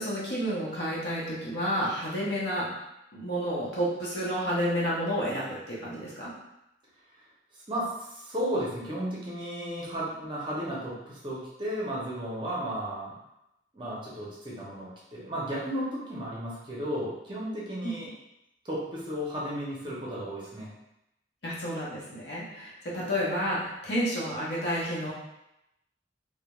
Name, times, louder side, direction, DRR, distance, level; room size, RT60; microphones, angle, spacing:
voice 1, 0.0-2.7 3.1-6.3 21.4-25.1, equal, 70° left, -6 dB, 0.8 m, -30 dB
voice 2, 7.5-13.1 13.7-18.1 18.6-20.7, equal, 25° right, -6 dB, 0.6 m, -34 dB
2.3 x 2.1 x 2.9 m, 0.87 s
head